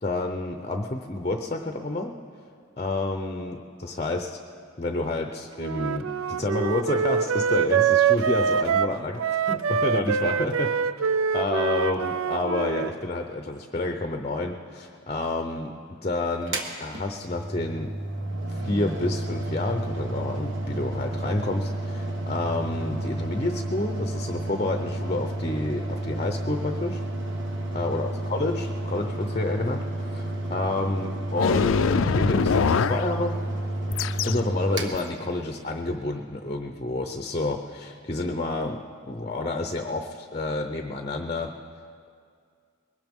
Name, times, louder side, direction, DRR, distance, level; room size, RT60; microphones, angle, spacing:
voice 1, 0.0-2.2 2.8-4.4 4.8-10.8 11.3-17.9 18.5-27.0 27.7-33.4 34.2-41.5, left 2 dB, 30° left, 5 dB, 0.6 m, -29 dB
Wind instrument woodwind instrument, 5.6-12.9, right 7 dB, 85° right, 0.4 m, -24 dB
Mechanical fan, 16.4-35.8, right 1 dB, 60° right, 1.4 m, -31 dB
sound 1, 31.4-33.1 33.9-34.4 34.9-35.0, left 5 dB, 75° left, 0.4 m, -23 dB
21.5 x 18.0 x 3.6 m, 2.2 s
head